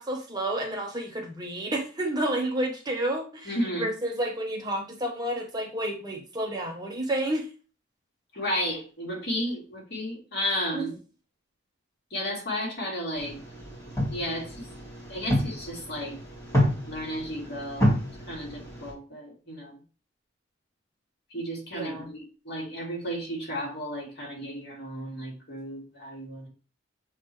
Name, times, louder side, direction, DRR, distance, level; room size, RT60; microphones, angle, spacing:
voice 1, 0.0-3.5 3.8-7.4 10.7-10.9 21.7-22.1, right 1 dB, 20° right, 1 dB, 1.1 m, -30 dB
voice 2, 3.4-3.9 8.3-11.0 12.1-13.4 14.1-14.7 15.1-16.2 16.9-18.0 18.3-19.8 21.3-26.5, equal, 60° left, -2 dB, 2.5 m, -33 dB
sound 1, 13.2-18.9, equal, 15° left, 3.5 m, -29 dB
7.3 x 4.0 x 3.2 m, 0.35 s
head